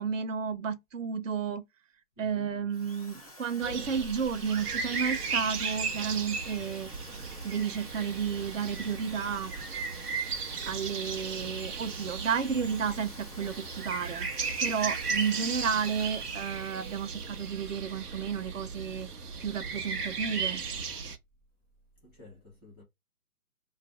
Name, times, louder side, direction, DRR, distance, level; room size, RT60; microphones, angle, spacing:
voice 1, 0.0-1.6 2.2-6.9 7.4-9.5 10.7-20.6, right 6 dB, 55° right, 0.7 m, -32 dB
voice 2, 2.2-2.9 22.0-22.8, left 2 dB, 10° right, 0.7 m, -53 dB
Drill, 2.7-17.9, left 2 dB, 30° left, 0.4 m, -51 dB
sound 1, 3.6-21.2, right 5 dB, 80° right, 0.9 m, -36 dB
2.5 x 2.1 x 3.6 m
hypercardioid pair, 150°, 45 cm